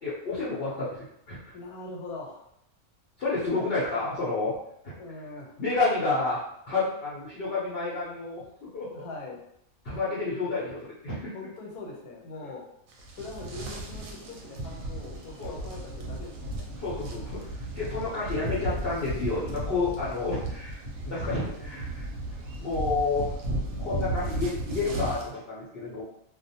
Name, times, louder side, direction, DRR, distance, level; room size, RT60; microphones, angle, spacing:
voice 1, 0.0-1.4 3.2-4.6 4.8-4.9 5.6-9.0 9.8-11.3 15.4-15.5 16.7-17.5 17.8-20.8 21.1-22.1 22.3-23.3 23.8-26.0, left 3 dB, 50° left, -8 dB, 0.8 m, -30 dB
voice 2, 1.5-2.4 5.0-5.5 8.9-9.4 11.3-12.6 13.1-16.7 21.2-21.8, left 2 dB, 75° left, -1 dB, 1.2 m, -42 dB
sound 1, 12.9-25.3, right 1 dB, 70° right, 1.0 m, -35 dB
2.5 x 2.2 x 2.7 m, 0.74 s
omnidirectional pair, 1.6 m